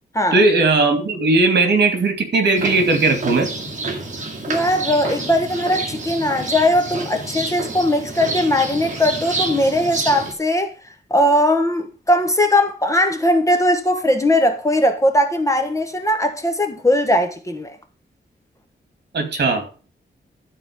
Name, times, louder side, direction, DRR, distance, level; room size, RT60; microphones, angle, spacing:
voice 1, 0.3-3.5 19.1-19.7, right 3 dB, 65° right, 2.6 m, -17 dB
sound 1, 2.6-10.3, right 2 dB, 40° right, 2.3 m, -28 dB
voice 2, 4.5-10.7 11.1-17.8, left 1 dB, 15° left, 1.2 m, -19 dB
12.0 x 4.4 x 6.7 m
wide cardioid pair, 170°, 19 cm